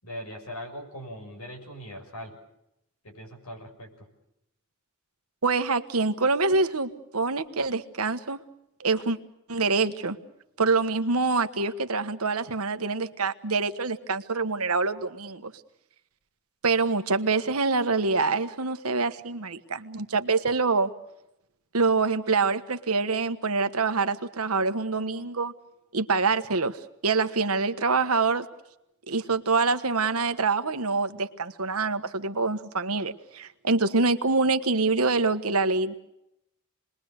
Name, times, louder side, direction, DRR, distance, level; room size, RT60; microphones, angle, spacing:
voice 1, 0.0-2.4 3.0-4.1, equal, 85° left, 4 dB, 6.8 m, -40 dB
voice 2, 5.4-8.4 8.8-9.2 9.5-10.2 10.6-15.5 16.6-20.9 21.7-25.5 25.9-28.5 29.1-35.9, right 4 dB, 85° right, 9 dB, 1.4 m, -25 dB
28.5 x 21.5 x 6.6 m, 0.84 s
head